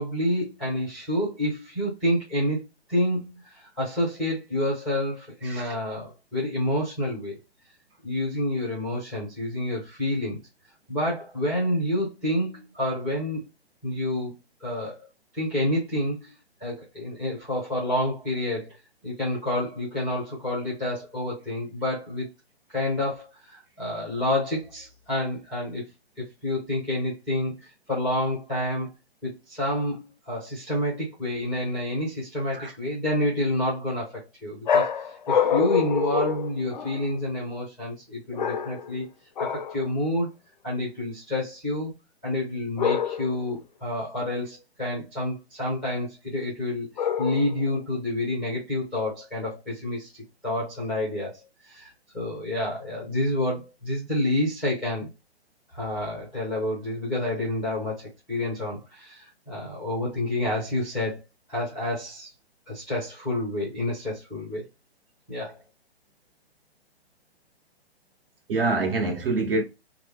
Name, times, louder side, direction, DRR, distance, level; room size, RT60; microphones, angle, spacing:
voice 1, 0.0-2.6 2.9-7.4 8.0-10.4 10.9-13.4 13.8-14.3 14.6-15.1 15.3-16.3 16.6-18.8 19.0-22.3 22.7-25.8 26.2-28.9 29.2-39.0 39.4-40.3 40.6-41.9 42.2-46.9 47.2-55.1 55.7-61.2 61.5-62.3 62.7-64.6 65.3-65.6, left 1 dB, ahead, 0.5 m, -28 dB
voice 2, 5.4-5.8 32.5-32.7 68.5-69.6, right 3 dB, 60° right, 1.3 m, -26 dB
sound 1, 34.7-37.2 38.3-39.0 39.4-39.8 42.8-43.4 47.0-47.7, left 7 dB, 45° left, 0.5 m, -26 dB
3.3 x 2.1 x 3.4 m
hypercardioid pair, 150°, 32 cm